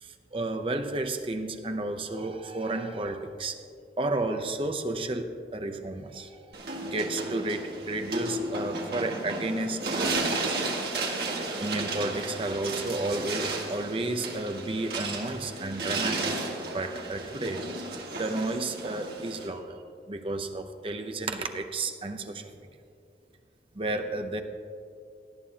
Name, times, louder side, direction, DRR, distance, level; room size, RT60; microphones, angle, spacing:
voice 1, 0.0-3.6 4.0-6.4 6.8-10.2 10.5-10.6 11.6-16.3 16.6-17.7 18.1-19.8 20.1-22.7 23.7-24.4, right 2 dB, 30° right, 6 dB, 0.7 m, -32 dB
sound 1, 6.5-19.5, right 2 dB, 60° right, 1.9 m, -33 dB
18.5 x 11.5 x 2.9 m, 2.4 s
head